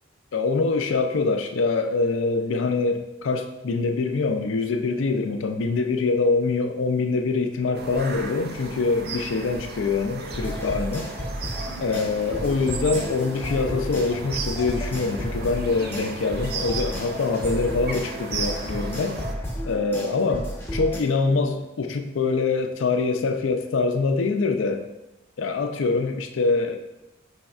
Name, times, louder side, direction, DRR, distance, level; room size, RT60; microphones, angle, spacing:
voice 1, 0.3-11.1 11.8-19.2 19.6-24.8 25.4-26.8, left 4 dB, 75° left, 6 dB, 0.4 m, -24 dB
sound 1, 7.7-19.3, right 4 dB, 50° right, 0.4 m, -35 dB
sound 2, 10.3-21.0, equal, 10° left, 0.7 m, -33 dB
5.2 x 3.4 x 2.4 m, 0.96 s
head